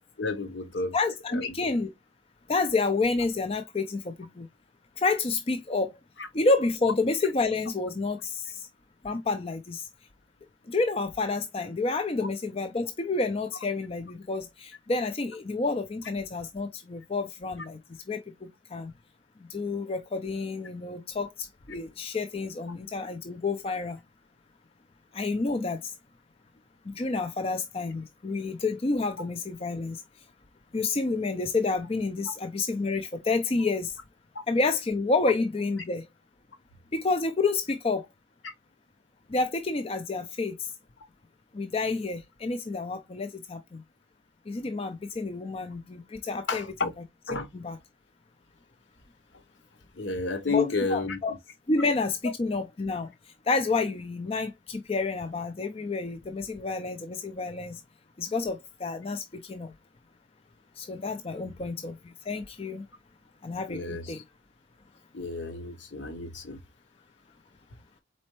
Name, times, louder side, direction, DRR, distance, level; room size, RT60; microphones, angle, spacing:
voice 1, 0.2-1.0 1.3-1.7 6.2-6.3 38.4-38.5 46.5-46.9 47.3-47.5 50.0-51.4 61.4-61.5 63.7-64.2 65.1-66.6, left 3 dB, 65° left, 0.9 m, -31 dB
voice 2, 0.9-1.9 2.5-4.5 5.0-5.9 6.3-8.7 9.0-9.9 10.7-17.8 18.1-18.9 19.5-24.0 25.1-25.9 26.9-30.0 30.7-34.0 34.5-36.0 36.9-38.1 39.3-40.7 41.5-43.8 44.5-46.6 47.5-47.8 50.5-51.3 51.7-53.1 53.5-57.8 58.2-59.7 60.8-62.8 63.4-64.2, left 3 dB, 30° left, 0.4 m, -29 dB
4.2 x 4.2 x 3.0 m
head